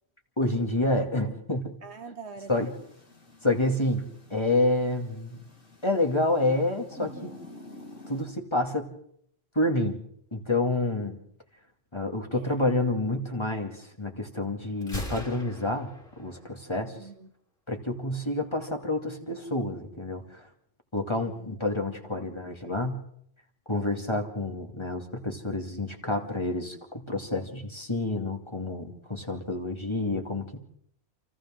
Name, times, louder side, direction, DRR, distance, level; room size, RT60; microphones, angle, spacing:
voice 1, 0.4-1.8 2.5-2.7 3.4-5.4 5.8-7.3 8.1-8.9 9.5-10.0 10.3-11.2 11.9-17.0 17.7-20.5 20.9-23.0 23.7-30.6, left 2 dB, 25° left, 2.5 m, -28 dB
voice 2, 1.8-2.7 12.3-12.6 16.9-17.3 21.2-21.6 22.0-22.1 23.7-24.1, right 4 dB, 65° right, 1.6 m, -45 dB
sound 1, 2.4-8.2, left 2 dB, 90° left, 4.4 m, -49 dB
Gunshot gunfire, 14.8-16.8, equal, 45° left, 5.7 m, -39 dB
29.0 x 28.5 x 3.8 m
omnidirectional pair, 1.2 m